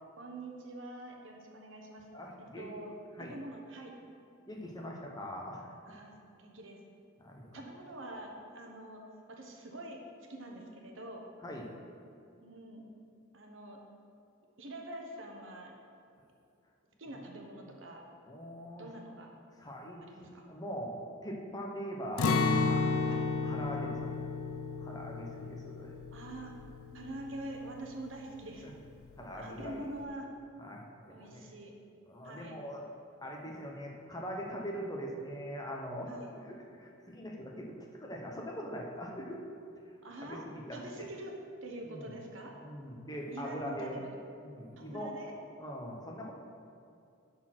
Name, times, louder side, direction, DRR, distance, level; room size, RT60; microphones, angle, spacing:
voice 1, 0.2-2.0 2.6-2.9 3.2-3.9 5.9-6.1 6.4-6.8 7.5-9.0 9.3-10.0 10.3-11.3 12.0-12.1 12.4-12.9 13.3-13.8 14.6-15.7 17.0-18.0 18.8-19.3 20.0-20.4 23.1-23.2 26.1-26.5 26.9-28.7 29.4-30.3 31.1-31.7 32.2-32.5 36.1-36.3 40.0-40.4 40.7-41.3 41.6-42.5 43.3-44.2 44.8-45.3, right 1 dB, 60° right, 1 dB, 1.2 m, -45 dB
voice 2, 2.1-2.8 3.2-3.4 4.5-6.0 7.2-7.6 11.4-11.7 17.1-17.2 18.3-18.9 19.6-21.0 21.2-22.4 22.7-24.1 24.8-25.9 29.2-29.9 30.6-31.5 32.1-32.8 33.2-36.1 36.4-37.7 38.0-39.4 39.8-39.9 40.2-41.1 41.8-42.1 42.6-44.0 44.4-45.1 45.6-46.3, equal, 15° left, 0 dB, 0.9 m, -42 dB
Acoustic guitar, 22.2-28.1 28.4-28.6 29.0-29.5, left 4 dB, 80° left, 0.5 m, -33 dB
10.5 x 4.3 x 6.0 m, 2.5 s
head